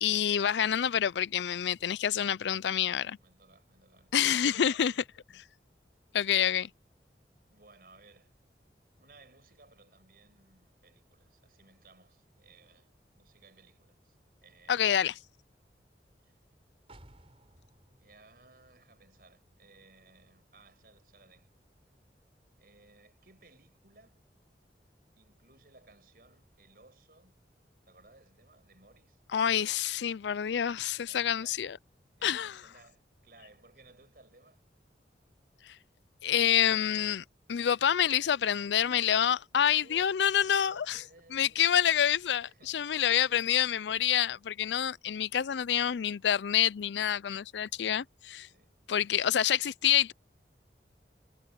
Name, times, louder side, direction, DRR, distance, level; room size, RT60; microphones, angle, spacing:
voice 1, 0.0-3.0 4.1-4.9 6.1-6.7 14.7-15.1 29.3-31.8 32.2-32.6 35.7-35.8 36.2-41.0 41.3-48.5 48.9-50.1, left 9 dB, 85° left, 0.4 m, -27 dB
voice 2, 2.7-5.0 7.5-8.3 9.0-14.2 14.4-15.1 16.2-16.3 18.0-21.5 22.6-24.2 25.1-27.3 27.8-29.2 31.1-31.7 32.2-34.6 37.9-38.9 39.5-42.8 43.2-43.6 48.5-48.7, right 3 dB, 55° right, 6.6 m, -60 dB
sound 1, 16.9-20.6 21.0-21.1, right 1 dB, 35° right, 4.4 m, -60 dB
head